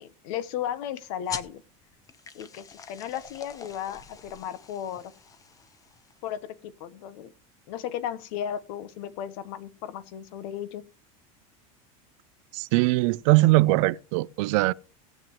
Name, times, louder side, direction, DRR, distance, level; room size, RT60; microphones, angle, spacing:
voice 1, 0.0-1.6 2.3-5.1 6.2-7.3 7.7-10.8, left 10 dB, 70° left, 1.1 m, -35 dB
sound 1, 1.3-6.3, left 5 dB, 20° left, 0.9 m, -44 dB
voice 2, 12.5-14.7, right 21 dB, 65° right, 0.5 m, -21 dB
18.5 x 7.6 x 3.1 m
supercardioid pair, 135°, 18 cm